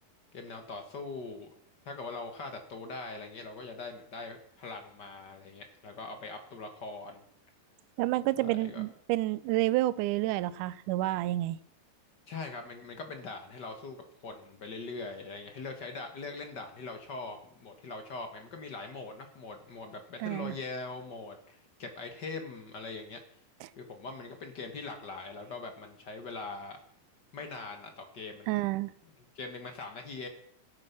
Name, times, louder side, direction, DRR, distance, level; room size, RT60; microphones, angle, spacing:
voice 1, 0.3-1.5 1.8-7.2 8.4-8.8 12.3-23.2 23.8-26.8 27.3-28.6 29.3-30.3, left 3 dB, 50° left, 5 dB, 1.3 m, -42 dB
voice 2, 8.0-11.6 20.2-20.6 23.6-23.7 28.5-28.9, right 16 dB, 80° right, 17 dB, 2.0 m, -29 dB
15.5 x 8.9 x 5.9 m, 0.67 s
omnidirectional pair, 4.0 m